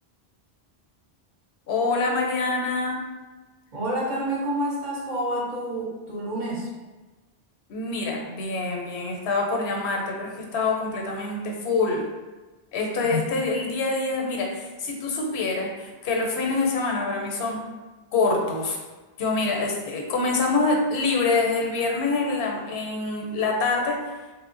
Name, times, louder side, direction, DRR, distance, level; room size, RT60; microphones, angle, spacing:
voice 1, 1.7-3.0 7.7-12.0 12.7-17.6 18.1-18.8 19.2-24.0, left 3 dB, 90° left, 0 dB, 0.8 m, -25 dB
voice 2, 3.7-6.7 13.1-13.2, equal, 50° right, -5 dB, 0.7 m, -28 dB
2.9 x 2.0 x 2.4 m, 1.2 s
omnidirectional pair, 1.0 m